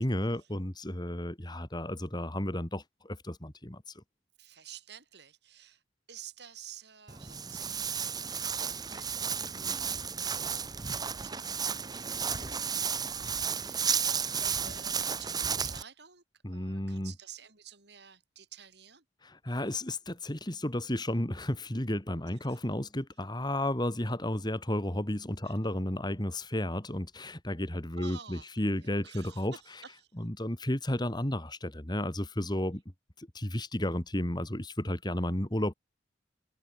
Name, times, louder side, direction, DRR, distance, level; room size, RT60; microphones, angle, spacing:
voice 1, 0.0-3.8 16.4-17.1 19.2-29.5 30.2-32.8 33.2-35.7, left 1 dB, 25° left, 2.6 m, -33 dB
voice 2, 4.4-5.8 6.1-16.2 16.5-19.0 22.3-22.6 25.4-25.6 28.0-30.1, right 8 dB, 65° right, 7.7 m, -52 dB
Walk footsteps, 7.1-15.8, right 6 dB, 20° right, 1.0 m, -33 dB
head